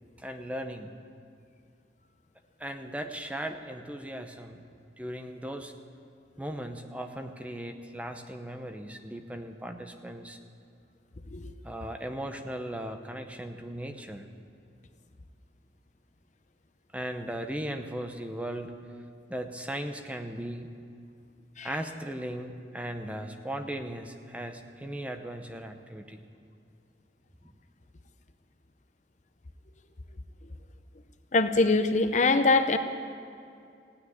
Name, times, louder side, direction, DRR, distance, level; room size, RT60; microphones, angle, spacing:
voice 1, 0.2-0.9 2.6-4.6 5.0-5.7 6.4-10.4 11.6-14.2 16.9-18.7 19.3-20.7 21.6-26.2, right 1 dB, 5° right, 6 dB, 0.7 m, -37 dB
voice 2, 31.3-32.8, left 3 dB, 40° left, 8 dB, 0.7 m, -23 dB
16.0 x 9.4 x 9.6 m, 2.4 s
head